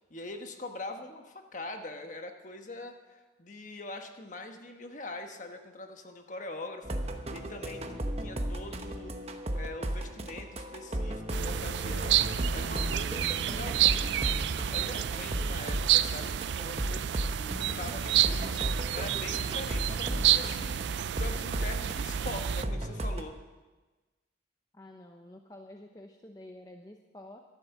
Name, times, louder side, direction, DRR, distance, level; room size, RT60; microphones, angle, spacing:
voice 1, 0.1-9.2 9.5-14.3 14.7-20.8 21.1-23.3, left 2 dB, 40° left, 5 dB, 1.3 m, -43 dB
sound 1, 6.8-23.2, right 1 dB, 35° right, 1.0 m, -35 dB
sound 2, 11.3-22.6, right 11 dB, 65° right, 0.4 m, -29 dB
voice 2, 24.7-27.4, left 1 dB, 20° left, 3 dB, 0.7 m, -49 dB
13.5 x 11.5 x 7.1 m, 1.3 s
head